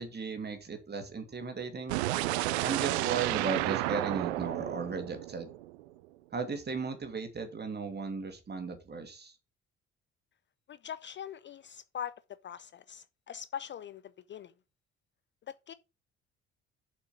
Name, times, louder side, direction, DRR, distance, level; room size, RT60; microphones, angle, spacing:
voice 1, 0.0-2.0 2.6-5.5 6.3-9.3, right 5 dB, 30° right, 2.7 m, -36 dB
sound 1, 1.9-5.9, right 17 dB, 70° right, 0.6 m, -32 dB
voice 2, 10.7-12.1 12.4-14.0 14.3-14.5 15.7-15.8, left 9 dB, 35° left, 0.5 m, -42 dB
7.4 x 5.8 x 6.0 m
figure-of-eight pair, 50°, 34 cm